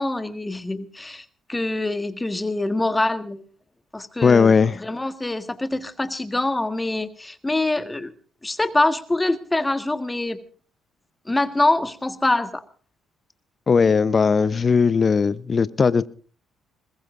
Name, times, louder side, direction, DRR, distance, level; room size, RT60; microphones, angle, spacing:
voice 1, 0.0-3.4 3.9-4.5 4.8-8.1 8.4-10.4 11.2-12.6, left 2 dB, 15° left, 1.6 m, -24 dB
voice 2, 4.2-4.8 13.7-16.1, left 5 dB, 40° left, 0.8 m, -18 dB
21.5 x 20.5 x 2.6 m
hypercardioid pair, 50°, 0 cm